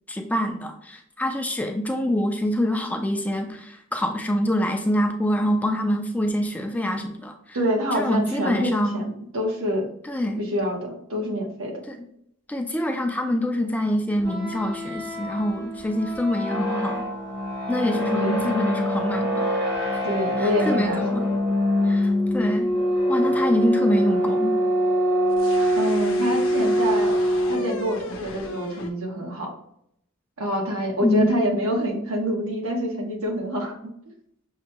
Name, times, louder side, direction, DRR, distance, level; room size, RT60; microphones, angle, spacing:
voice 1, 0.1-7.6 7.9-9.1 10.1-10.4 11.9-12.0 12.5-17.0 17.7-19.5 20.4-21.3 21.8-22.7 23.1-24.5 31.0-31.3, equal, 5° left, 4 dB, 0.3 m, -25 dB
voice 2, 7.5-9.9 10.4-11.8 18.1-18.5 20.0-21.2 25.7-27.2 27.5-29.5 30.4-33.8, equal, 80° right, 0 dB, 1.1 m, -26 dB
sound 1, 14.2-27.9, equal, 55° right, 1.2 m, -24 dB
sound 2, 25.3-28.9, left 3 dB, 70° left, 0.6 m, -37 dB
6.3 x 2.2 x 2.9 m, 0.71 s
head